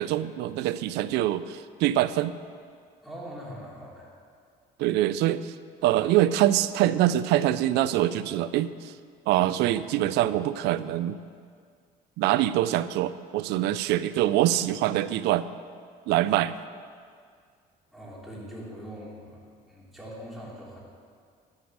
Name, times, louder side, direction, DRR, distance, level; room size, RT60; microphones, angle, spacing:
voice 1, 0.0-2.3 4.8-5.5 5.8-8.7 9.3-11.2 12.2-15.5 16.1-16.6, right 13 dB, 85° right, 15 dB, 0.4 m, -24 dB
voice 2, 3.0-4.1 17.9-20.8, equal, ahead, -6 dB, 3.0 m, -42 dB
11.5 x 5.2 x 7.9 m, 2.1 s
cardioid pair, 110°, 17 cm